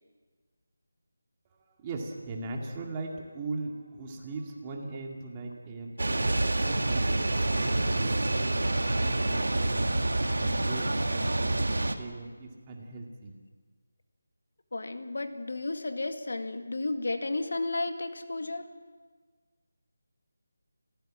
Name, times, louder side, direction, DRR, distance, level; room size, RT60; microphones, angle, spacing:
voice 1, 1.8-7.2 7.5-9.9 10.3-10.8 11.1-11.2 11.5-13.4, right 3 dB, 20° right, 1 dB, 2.2 m, -39 dB
sound 1, 6.0-12.0, right 2 dB, 85° right, 1.9 m, -27 dB
voice 2, 14.7-18.7, left 2 dB, 70° left, 7 dB, 2.0 m, -33 dB
27.0 x 16.0 x 7.6 m, 1.5 s
figure-of-eight pair, 170°, 0 cm